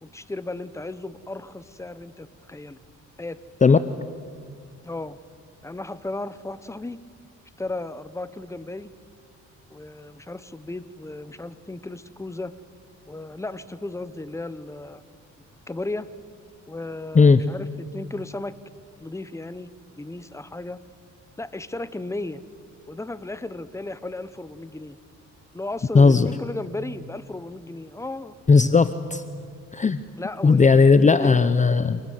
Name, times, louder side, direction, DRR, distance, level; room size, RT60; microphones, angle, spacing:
voice 1, 0.0-2.8 3.2-3.4 4.8-5.2 5.6-7.0 7.6-8.9 9.7-12.5 13.1-15.0 15.7-16.1 16.7-18.5 19.0-19.7 20.0-20.8 21.4-22.4 22.9-25.0 25.5-28.3 30.2-31.4, left 2 dB, 10° left, 14 dB, 1.1 m, -35 dB
voice 2, 25.9-26.3 28.5-29.2 29.7-30.0 30.4-32.0, left 4 dB, 25° left, 13 dB, 0.8 m, -16 dB
26.0 x 20.5 x 9.5 m, 2.1 s
cardioid pair, 90°, 30 cm